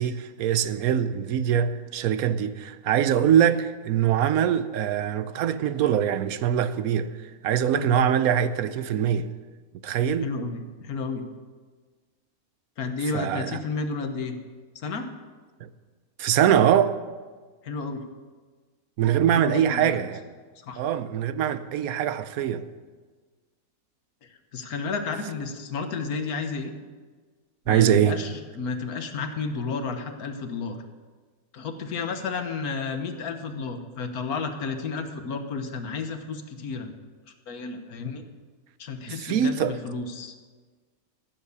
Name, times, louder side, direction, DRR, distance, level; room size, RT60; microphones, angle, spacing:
voice 1, 0.0-7.1 7.4-9.3 9.8-10.3 13.1-13.6 15.6-15.7 16.2-17.0 19.0-20.2 20.8-22.7 27.7-28.2 39.1-39.8, right 9 dB, 75° right, 1.1 m, -23 dB
voice 2, 10.2-11.2 12.8-14.3 14.7-15.1 17.6-18.0 19.3-20.0 20.6-20.8 24.2-26.7 27.7-30.8 31.5-36.9 37.5-38.2 38.8-40.3, left 4 dB, 75° left, 1.6 m, -32 dB
14.5 x 7.4 x 7.0 m
omnidirectional pair, 1.6 m